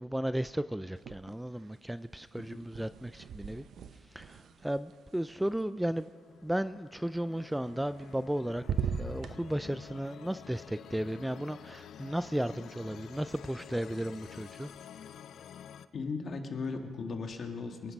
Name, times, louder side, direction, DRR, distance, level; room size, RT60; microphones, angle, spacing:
voice 1, 0.0-3.6 4.1-6.1 6.4-14.7, right 1 dB, 5° right, 14 dB, 0.3 m, -34 dB
sound 1, 1.0-1.7 1.9-6.0 7.7-8.3 8.6-9.4, right 7 dB, 65° right, 0.8 m, -39 dB
sound 2, 5.9-15.9, left 9 dB, 70° left, 0.5 m, -50 dB
voice 2, 15.9-17.9, left 4 dB, 50° left, 5 dB, 1.8 m, -37 dB
23.0 x 11.5 x 5.3 m, 2.1 s
cardioid pair, 90°, 0 cm